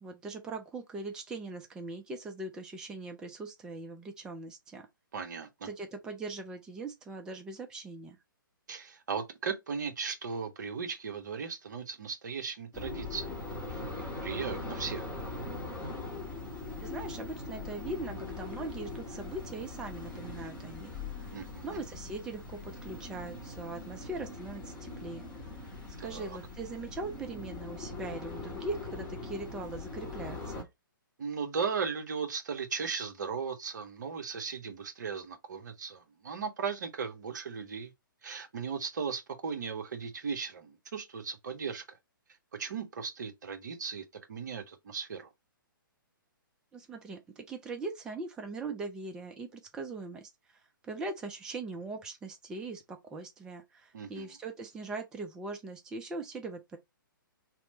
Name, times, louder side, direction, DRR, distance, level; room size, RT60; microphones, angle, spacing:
voice 1, 0.0-4.9 5.6-8.2 16.8-25.3 25.6-25.7 26.0-30.7 46.7-50.6 50.8-56.8, right 3 dB, 5° right, 0.3 m, -41 dB
voice 2, 5.1-5.7 8.7-13.3 13.7-15.1 21.3-21.8 26.0-26.4 31.2-37.9 38.2-42.0 42.6-45.3 53.9-54.3, right 5 dB, 55° right, 0.8 m, -37 dB
sound 1, 12.7-30.6, left 3 dB, 10° left, 0.9 m, -41 dB
2.9 x 2.0 x 4.0 m
figure-of-eight pair, 125°, 12 cm